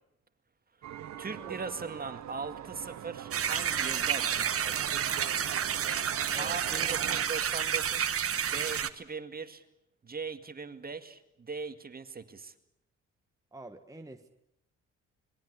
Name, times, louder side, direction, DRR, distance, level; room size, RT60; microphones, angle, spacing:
voice 1, 0.8-4.9 6.4-8.2 8.5-9.6 10.0-12.5, right 4 dB, 30° right, 9 dB, 2.1 m, -40 dB
sound 1, 0.8-7.3, right 11 dB, 65° right, 1.2 m, -43 dB
sound 2, 3.3-8.9, right 8 dB, 50° right, 1.4 m, -30 dB
voice 2, 6.3-6.9 13.5-14.3, right 2 dB, 10° right, 5 dB, 1.5 m, -47 dB
26.5 x 21.0 x 8.1 m, 0.78 s
cardioid pair, 90°, 30 cm